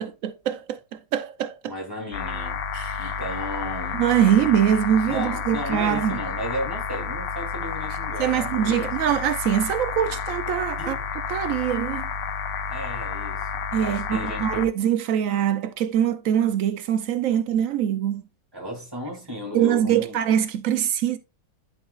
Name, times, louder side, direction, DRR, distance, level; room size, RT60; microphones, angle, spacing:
voice 1, 0.0-1.6 2.7-3.1 3.9-6.2 8.2-11.0 11.3-12.1 13.7-18.2 19.5-21.2, right 10 dB, 85° right, 0.7 m, -23 dB
voice 2, 1.6-2.6 3.0-4.0 5.1-9.2 10.0-10.1 10.8-11.1 12.7-14.7 18.5-20.2, equal, 10° right, 3.0 m, -34 dB
sound 1, 2.1-14.7, left 6 dB, 75° left, 1.4 m, -30 dB
11.5 x 4.8 x 2.4 m
omnidirectional pair, 2.1 m